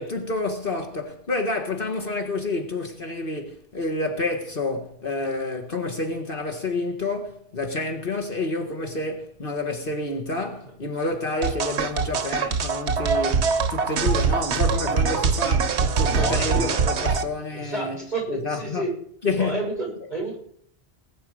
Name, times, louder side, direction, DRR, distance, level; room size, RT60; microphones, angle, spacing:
voice 1, 0.0-18.9 19.2-19.6, left 2 dB, 55° left, 1.8 m, -29 dB
sound 1, 11.4-17.2, right 5 dB, 85° right, 1.3 m, -23 dB
voice 2, 16.0-16.7 17.5-18.9 19.4-20.4, right 2 dB, 40° right, 6.7 m, -30 dB
19.5 x 8.8 x 5.0 m
omnidirectional pair, 1.1 m